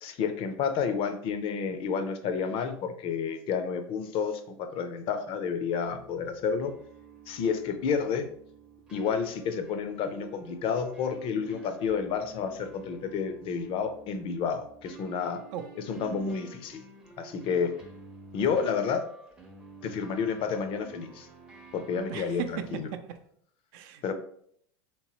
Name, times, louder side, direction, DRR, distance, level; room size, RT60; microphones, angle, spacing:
voice 1, 0.0-6.7 7.3-8.3 8.9-15.4 15.8-16.9 17.2-17.7 18.3-19.0 19.8-21.3 21.7-22.9 24.0-24.1, left 6 dB, 45° left, 8 dB, 0.5 m, -30 dB
sound 1, 5.8-22.8, right 5 dB, 5° right, 0.6 m, -51 dB
voice 2, 22.1-23.2 23.7-24.1, right 8 dB, 60° right, 8 dB, 0.5 m, -37 dB
3.1 x 3.0 x 3.0 m, 0.66 s
hypercardioid pair, 105°, 13 cm